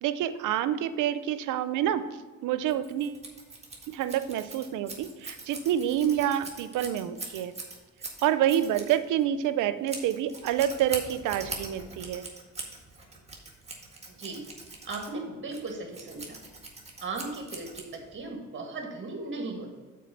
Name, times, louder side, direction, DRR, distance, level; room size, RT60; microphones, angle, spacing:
voice 1, 0.0-2.0 2.4-3.2 3.9-7.5 8.2-12.3, right 11 dB, 90° right, 12 dB, 0.6 m, -27 dB
Scissors, 2.6-18.3, right 3 dB, 20° right, 1.8 m, -43 dB
voice 2, 14.1-14.4 14.9-16.4 17.0-19.7, right 3 dB, 40° right, 2 dB, 1.9 m, -37 dB
6.7 x 4.5 x 6.6 m, 1.3 s
cardioid pair, 90°, 30 cm